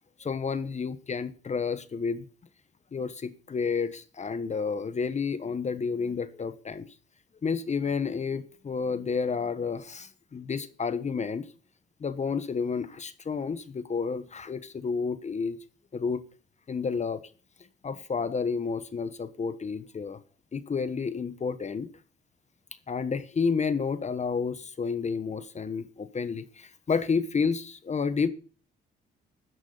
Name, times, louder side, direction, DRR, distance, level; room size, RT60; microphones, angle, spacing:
voice 1, 0.2-2.2 2.9-6.9 7.4-11.5 12.0-15.6 15.9-16.2 16.7-17.2 17.8-20.2 20.5-21.9 22.9-28.3, left 5 dB, 35° left, 1.2 m, -30 dB
13.0 x 10.5 x 4.0 m
cardioid pair, 90°, 20 cm